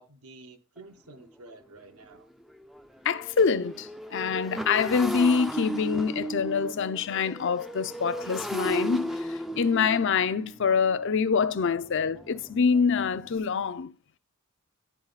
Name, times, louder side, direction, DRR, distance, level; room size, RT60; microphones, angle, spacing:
voice 1, 0.0-2.3, right 3 dB, 75° right, 1.1 m, -50 dB
Motorcycle, 0.8-0.9 1.3-1.5 1.8-13.4, equal, ahead, 0.4 m, -36 dB
voice 2, 3.0-13.9, left 5 dB, 55° left, 0.5 m, -25 dB
11.0 x 4.0 x 4.0 m
head